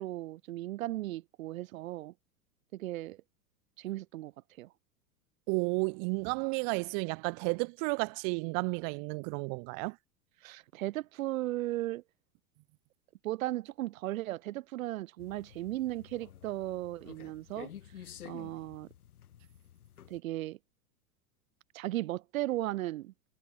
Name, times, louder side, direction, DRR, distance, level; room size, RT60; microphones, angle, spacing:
voice 1, 0.0-2.1 2.7-3.2 3.8-4.3 4.6-4.7 10.4-12.0 13.2-17.7 18.0-18.9 20.1-20.6 21.7-23.1, right 16 dB, 65° right, 2.3 m, -36 dB
voice 2, 5.5-10.0, right 40 dB or more, 40° right, 0.6 m, -32 dB
sound 1, 15.2-20.2, left 10 dB, 80° left, 2.9 m, -51 dB
hypercardioid pair, 100°, 44 cm